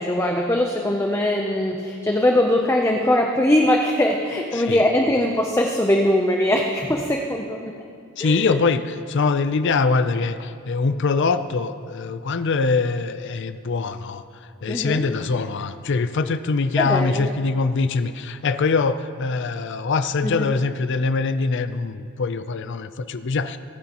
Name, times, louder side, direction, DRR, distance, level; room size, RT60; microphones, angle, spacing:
voice 1, 0.0-7.7 8.2-8.6 14.7-15.1 16.8-17.3 20.2-20.5, left 1 dB, 10° left, 2 dB, 0.6 m, -21 dB
voice 2, 4.5-4.9 8.2-14.2 14.6-23.6, left 4 dB, 55° left, 12 dB, 0.5 m, -23 dB
26.5 x 9.5 x 3.0 m, 2.4 s
head